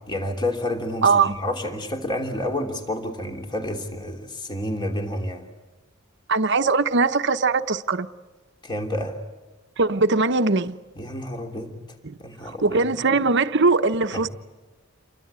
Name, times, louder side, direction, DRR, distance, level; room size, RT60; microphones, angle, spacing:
voice 1, 0.1-5.5 8.6-9.2 11.0-11.8 12.2-12.9 14.1-14.2, left 1 dB, 20° left, 3.0 m, -29 dB
voice 2, 1.0-1.3 6.3-8.1 9.8-10.8 12.0-12.1 12.6-14.3, right 4 dB, 55° right, 1.0 m, -20 dB
29.0 x 23.5 x 8.3 m
head